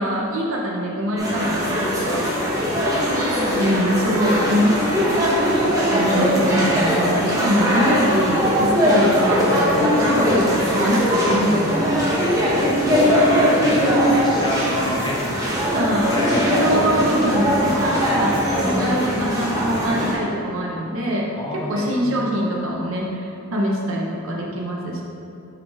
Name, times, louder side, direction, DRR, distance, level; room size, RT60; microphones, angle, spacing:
voice 1, 0.0-2.2 3.6-5.1 5.9-12.0 14.1-14.3 15.7-16.1 16.6-21.3 21.7-25.0, equal, 70° right, -2 dB, 0.8 m, -23 dB
sound 1, 1.2-20.1, equal, 15° right, 1.0 m, -20 dB
voice 2, 2.6-2.9 9.8-10.1 12.9-15.7 16.0-16.7 21.3-22.2, left 1 dB, 20° left, -3 dB, 0.7 m, -29 dB
5.3 x 5.2 x 3.5 m, 2.7 s
head